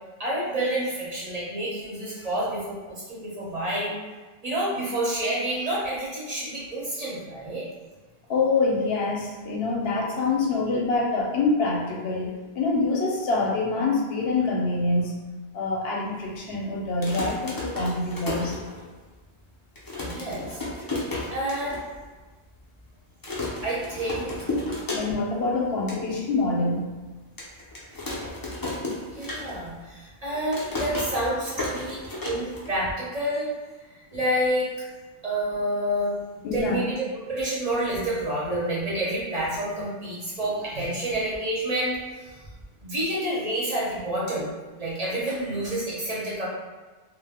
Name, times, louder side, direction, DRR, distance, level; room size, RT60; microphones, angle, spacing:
voice 1, 0.2-4.0 4.4-7.6 20.0-20.6 21.3-21.8 23.6-24.3 29.2-33.5 33.9-34.7 35.2-42.3 42.8-44.5 44.8-46.5, right 1 dB, 45° right, -7 dB, 0.7 m, -29 dB
voice 2, 8.3-15.1 15.5-18.5 24.9-26.9 36.4-36.8, left 3 dB, 75° left, -2 dB, 0.8 m, -25 dB
sound 1, 16.8-19.1 19.5-19.6 19.7-21.8 22.2-22.3 22.5-22.8 23.2-25.4 25.7-26.0 26.5-26.6 27.4-29.8 30.1-33.0, left 2 dB, 35° left, 0.4 m, -33 dB
2.1 x 2.0 x 3.3 m, 1.3 s
omnidirectional pair, 1.0 m